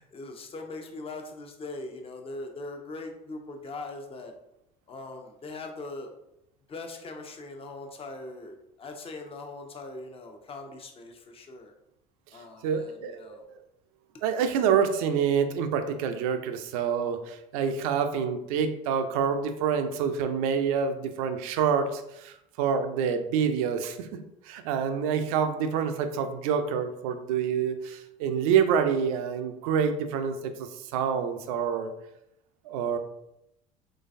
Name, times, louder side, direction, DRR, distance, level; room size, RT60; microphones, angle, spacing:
voice 1, 0.0-4.3 4.9-6.1 6.7-11.7 12.3-13.4, left 2 dB, 30° left, 4 dB, 0.7 m, -41 dB
voice 2, 12.6-13.6 14.2-24.2 24.4-31.9 32.6-33.0, right 7 dB, 85° right, 8 dB, 0.5 m, -27 dB
3.8 x 3.3 x 2.6 m, 0.83 s
supercardioid pair, 85°, 18 cm